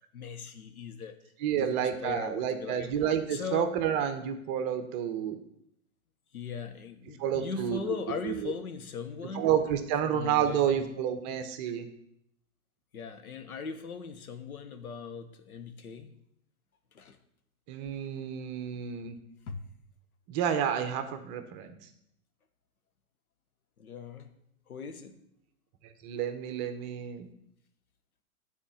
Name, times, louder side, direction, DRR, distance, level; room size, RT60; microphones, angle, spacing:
voice 1, 0.1-1.2 1.6-2.9 3.3-3.7 6.3-9.6 10.0-10.8 12.9-16.1 16.9-17.2 19.5-19.6 23.8-24.3 24.7-25.2, left 6 dB, 75° left, 8 dB, 1.2 m, -39 dB
voice 2, 1.4-5.4 7.2-7.8 8.2-8.5 9.3-11.9 17.7-19.2 20.3-21.8 26.0-27.3, right 9 dB, 30° right, 8 dB, 0.8 m, -30 dB
8.8 x 4.3 x 7.2 m, 0.74 s
hypercardioid pair, 115°, 44 cm